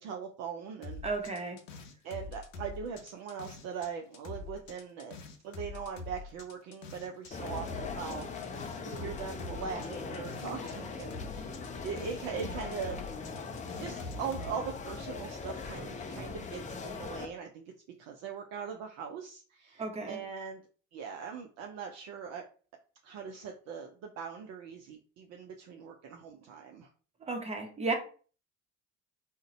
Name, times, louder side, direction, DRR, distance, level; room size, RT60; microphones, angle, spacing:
voice 1, 0.0-1.0 2.0-5.2 5.4-11.5 11.8-13.0 13.8-17.6 18.0-20.6 20.9-22.4 23.0-26.9, right 6 dB, 45° right, 3 dB, 0.5 m, -41 dB
sound 1, 0.8-3.9 4.1-10.7 11.0-14.5, left 3 dB, 75° left, 0.7 m, -45 dB
voice 2, 1.0-1.6 19.8-20.2 27.2-27.9, right 3 dB, 15° right, 4 dB, 0.8 m, -33 dB
sound 2, 7.3-17.3, left 4 dB, 20° left, 0.5 m, -40 dB
2.5 x 2.1 x 3.9 m, 0.40 s
figure-of-eight pair, 60°, 39 cm